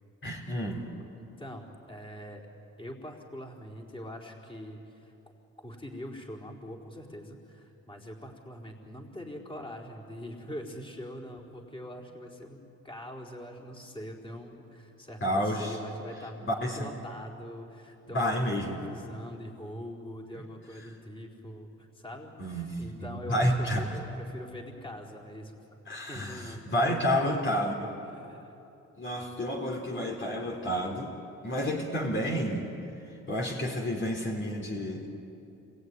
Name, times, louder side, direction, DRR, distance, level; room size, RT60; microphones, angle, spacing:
voice 1, 0.2-0.8 15.2-15.8 16.4-16.9 18.1-18.8 22.4-23.8 25.9-27.9 29.0-31.1 31.4-32.7 33.3-35.1, equal, 40° left, 0 dB, 3.8 m, -30 dB
voice 2, 1.1-2.5 2.8-5.1 5.6-25.8 26.1-27.4 27.8-28.5, equal, 15° left, -1 dB, 4.5 m, -43 dB
28.0 x 21.5 x 9.8 m, 3.0 s
cardioid pair, 90°, 30 cm